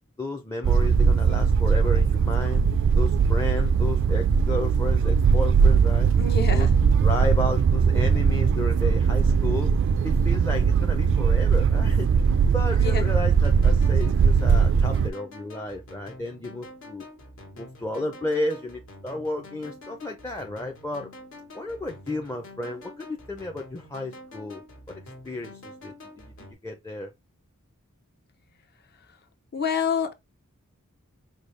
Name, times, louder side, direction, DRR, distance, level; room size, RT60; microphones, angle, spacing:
voice 1, 0.2-2.6 3.0-6.1 6.5-6.7 7.0-9.7 10.0-12.1 12.5-17.0 17.6-21.1 21.5-24.6 25.2-27.1, left 2 dB, 15° left, 0.5 m, -32 dB
sound 1, 0.6-15.1, right 6 dB, 55° right, 0.3 m, -20 dB
voice 2, 6.2-6.7 12.8-13.1 29.1-29.2 29.5-30.1, left 5 dB, 50° left, 0.7 m, -27 dB
sound 2, 13.1-26.5, left 1 dB, 65° left, 1.4 m, -46 dB
5.1 x 2.3 x 3.2 m
head